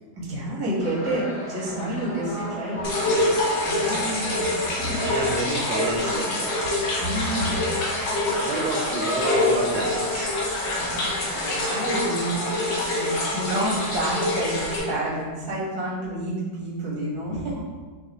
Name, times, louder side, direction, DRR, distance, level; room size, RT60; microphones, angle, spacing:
voice 1, 0.2-3.3 3.6-5.1 7.0-7.7 8.3-8.4 10.8-17.6, right 1 dB, 20° right, -6 dB, 0.7 m, -29 dB
sound 1, 0.8-14.5, equal, 45° left, 1.0 m, -33 dB
sound 2, 2.8-14.8, left 2 dB, 75° left, 1.6 m, -26 dB
voice 2, 3.1-6.5 8.4-10.4, right 3 dB, 85° right, 1 dB, 1.4 m, -31 dB
6.5 x 2.2 x 3.0 m, 1.4 s
omnidirectional pair, 2.1 m